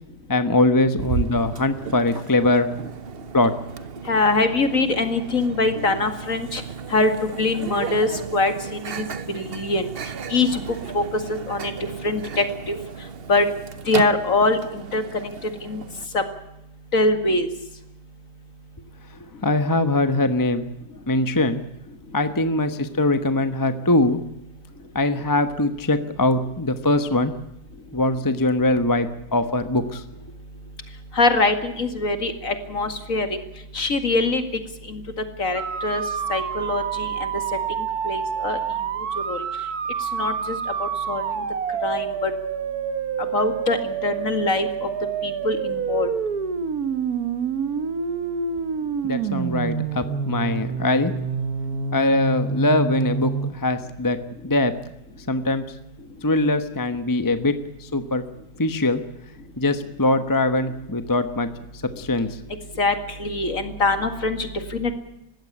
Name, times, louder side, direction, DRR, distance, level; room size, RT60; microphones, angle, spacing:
voice 1, 0.3-2.7 3.3-3.5 19.4-20.7 21.1-21.6 22.1-24.2 24.9-27.3 27.9-30.0 49.0-51.1 51.9-54.2 54.4-54.7 55.3-55.6 56.2-58.2 58.6-59.0 59.6-61.5 62.0-62.3, left 2 dB, 15° left, 10 dB, 0.9 m, -22 dB
Microwave oven, 1.0-16.1, right 6 dB, 45° right, 0.9 m, -34 dB
voice 2, 4.1-6.6 6.9-7.1 7.4-8.5 8.9-9.0 9.3-9.9 10.3-10.6 10.9-11.0 11.3-11.7 12.0-12.8 13.3-13.5 13.9-15.0 15.6-15.8 16.1-16.2 16.9-17.5 31.2-33.3 33.7-34.4 34.9-35.0 35.4-36.0 36.3-37.3 38.1-38.6 39.3-39.4 40.1-41.2 41.8-42.3 43.3-44.9 45.2-46.1 62.8-64.9, left 3 dB, 50° left, 8 dB, 2.5 m, -23 dB
sound 1, 35.6-53.5, right 6 dB, 60° right, 1.7 m, -27 dB
20.5 x 16.0 x 9.8 m, 0.87 s
omnidirectional pair, 1.8 m